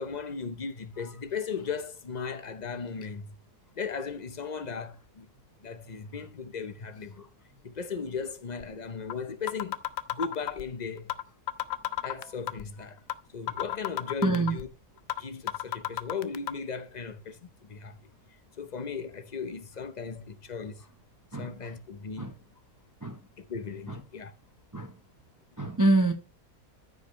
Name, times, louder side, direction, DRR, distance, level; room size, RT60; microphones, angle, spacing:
voice 1, 0.0-3.4 3.8-5.3 5.6-7.3 7.6-9.8 10.1-11.1 12.0-13.0 13.3-14.7 15.2-18.0 18.6-20.8 21.4-22.3 23.4-24.3, left 5 dB, 50° left, 0.5 m, -37 dB
sound 1, 8.6-8.7 9.1-9.2 9.5-10.6 11.1-11.2 11.5-12.6 13.1-13.2 13.5-14.6 15.1-15.2 15.5-16.5, left 13 dB, 70° left, 0.9 m, -31 dB
voice 2, 14.2-14.6 21.3-21.5 22.2-22.3 23.0-23.1 24.7-24.9 25.6-26.1, right 2 dB, 20° right, 0.5 m, -25 dB
14.0 x 5.1 x 3.1 m
omnidirectional pair, 1.7 m